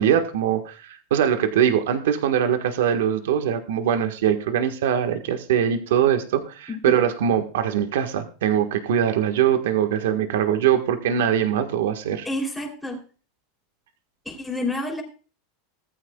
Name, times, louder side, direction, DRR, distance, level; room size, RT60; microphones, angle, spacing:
voice 1, 0.0-12.3, right 9 dB, 80° right, 7 dB, 1.5 m, -22 dB
voice 2, 12.2-13.0 14.2-15.0, left 2 dB, ahead, 0 dB, 3.2 m, -29 dB
18.5 x 14.0 x 2.4 m, 0.37 s
supercardioid pair, 160°, 0 cm